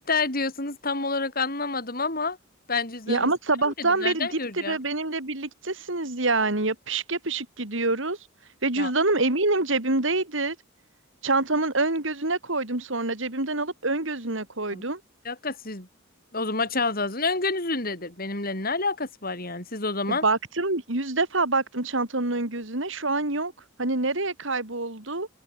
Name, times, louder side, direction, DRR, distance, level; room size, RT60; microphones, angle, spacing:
voice 1, 0.0-2.4 2.7-3.3 3.6-4.8 8.8-8.9 14.7-14.8 15.2-15.9 16.3-20.2, left 3 dB, 45° left, 6.8 m, -28 dB
voice 2, 3.1-8.2 8.6-10.5 11.2-15.0 20.1-23.5 23.8-25.3, right 2 dB, 70° right, 3.3 m, -26 dB
head